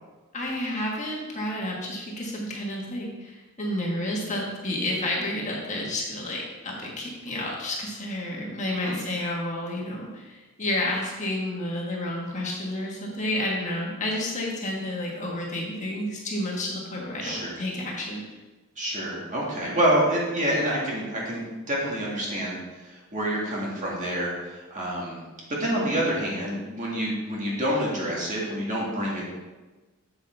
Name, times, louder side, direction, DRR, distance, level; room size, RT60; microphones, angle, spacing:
voice 1, 0.3-18.2, left 1 dB, 35° left, -2 dB, 1.5 m, -30 dB
voice 2, 17.2-17.6 18.8-25.2 25.6-29.2, right 1 dB, 35° right, -4 dB, 1.9 m, -27 dB
8.3 x 7.3 x 3.4 m, 1.2 s
head